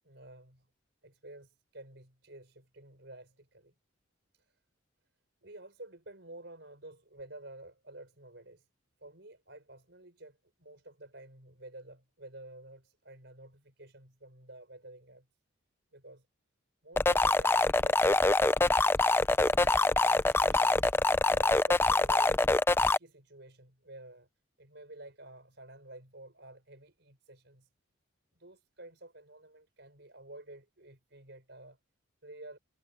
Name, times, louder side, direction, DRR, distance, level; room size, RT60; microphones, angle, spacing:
voice 1, 0.0-0.7 1.0-3.7 4.3-4.5 5.4-8.6 9.0-15.3 15.9-16.2 16.8-18.7 19.4-21.0 21.3-22.4 22.7-24.3 24.6-27.7 28.4-31.8 32.2-32.6, right 2 dB, 60° right, 6.4 m, -51 dB
sound 1, 17.0-23.0, left 2 dB, 10° left, 0.4 m, -25 dB
head